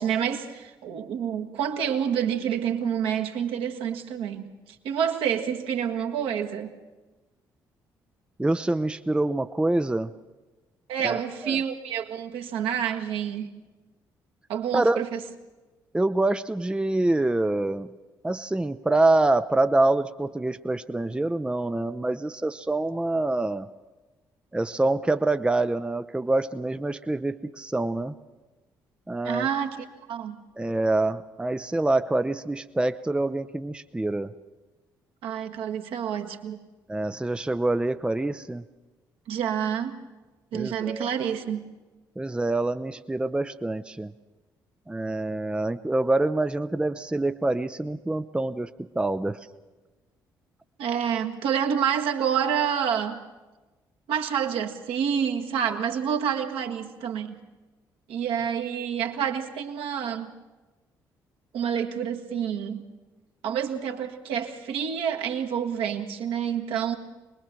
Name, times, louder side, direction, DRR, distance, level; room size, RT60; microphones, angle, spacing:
voice 1, 0.0-6.7 10.9-13.5 14.5-15.2 29.2-29.8 30.1-30.4 35.2-36.6 39.3-40.0 40.5-41.7 50.8-53.2 54.1-57.4 58.1-60.3 61.5-62.9 63.4-67.0, right 8 dB, 60° right, 3 dB, 1.7 m, -28 dB
voice 2, 8.4-10.1 11.0-11.6 14.7-15.0 15.9-17.9 18.2-23.7 24.5-28.1 29.1-29.5 30.6-34.3 36.9-38.6 40.5-41.1 42.2-44.1 44.9-48.7 49.0-49.4, right 2 dB, 10° right, 11 dB, 0.7 m, -26 dB
24.0 x 21.0 x 6.1 m, 1.2 s
figure-of-eight pair, 40°, 10 cm